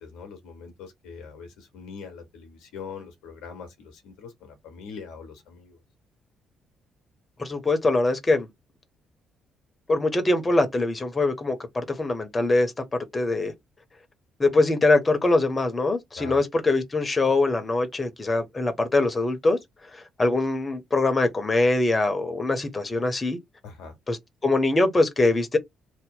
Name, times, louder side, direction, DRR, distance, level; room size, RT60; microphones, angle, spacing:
voice 1, 0.0-5.8 16.2-16.4 23.6-24.0, left 5 dB, 65° left, 0.8 m, -42 dB
voice 2, 7.4-8.5 9.9-13.5 14.4-19.6 20.2-23.4 24.1-24.2 24.4-25.6, left 2 dB, 25° left, 0.8 m, -23 dB
2.7 x 2.1 x 3.7 m
figure-of-eight pair, 45°, 0 cm